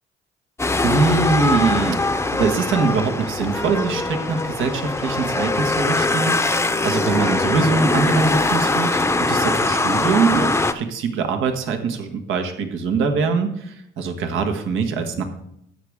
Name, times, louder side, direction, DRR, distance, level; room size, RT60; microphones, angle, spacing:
sound 1, 0.6-10.7, left 2 dB, 15° left, 0.7 m, -22 dB
voice 1, 0.8-15.2, right 4 dB, 85° right, 5 dB, 1.5 m, -23 dB
12.5 x 8.4 x 3.6 m, 0.75 s
cardioid pair, 90°, 20 cm